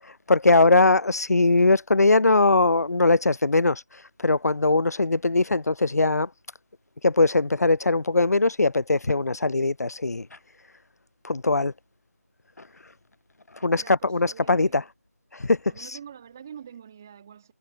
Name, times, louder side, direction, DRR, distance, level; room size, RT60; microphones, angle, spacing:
voice 1, 0.0-6.3 7.0-10.3 11.2-11.7 13.6-14.8 15.3-16.0, left 3 dB, 80° left, 0.4 m, -21 dB
voice 2, 13.6-14.8 15.7-17.5, right 8 dB, 10° right, 2.4 m, -45 dB
figure-of-eight pair, 175°, 8 cm